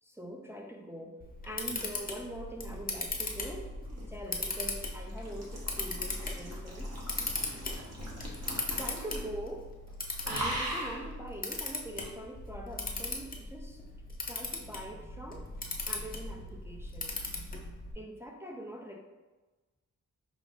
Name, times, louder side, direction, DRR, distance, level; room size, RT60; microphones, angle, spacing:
voice 1, 0.0-1.2 1.4-3.7 4.1-7.3 8.7-9.7 10.2-13.8 14.2-17.2 17.9-19.0, right 1 dB, 10° right, 0 dB, 0.4 m, -43 dB
Camera, 1.2-17.9, left 2 dB, 25° left, 0.7 m, -38 dB
sound 1, 3.6-9.4 9.6-9.9 10.2-11.1 12.0-12.1, right 1 dB, 50° right, 1.0 m, -40 dB
4.8 x 2.5 x 3.5 m, 1.2 s
wide cardioid pair, 95°, 33 cm